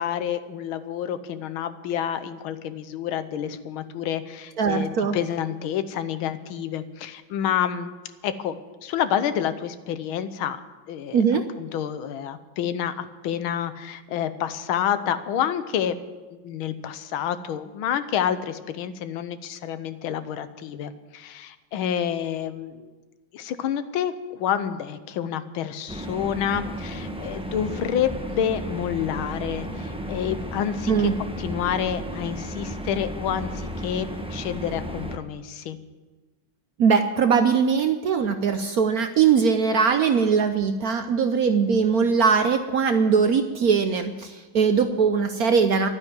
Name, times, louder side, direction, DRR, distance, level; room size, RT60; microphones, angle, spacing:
voice 1, 0.0-7.9 8.2-8.5 8.8-10.6 10.9-11.2 11.6-15.9 16.4-22.9 23.3-31.1 31.4-35.8, left 9 dB, 90° left, 12 dB, 1.6 m, -28 dB
voice 2, 4.6-5.2 11.1-11.5 30.9-31.1 36.8-45.9, right 6 dB, 65° right, 8 dB, 0.9 m, -21 dB
sound 1, 25.9-35.2, equal, 5° right, 0.4 m, -34 dB
12.0 x 9.5 x 9.2 m, 1.3 s
omnidirectional pair, 2.2 m